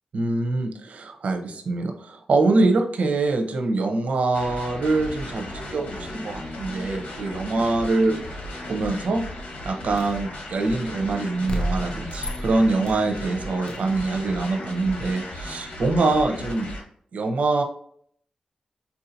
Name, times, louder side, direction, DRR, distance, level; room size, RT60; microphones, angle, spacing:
voice 1, 0.1-8.1 8.6-9.3 9.6-16.7 17.1-17.6, right 3 dB, 75° right, 4 dB, 0.7 m, -24 dB
sound 1, 4.3-16.8, left 1 dB, 80° left, 1.2 m, -36 dB
sound 2, 10.0-10.2 11.5-13.1 13.7-13.9, equal, 40° left, 0.6 m, -31 dB
4.5 x 2.7 x 2.6 m, 0.63 s
wide cardioid pair, 85°, 2 cm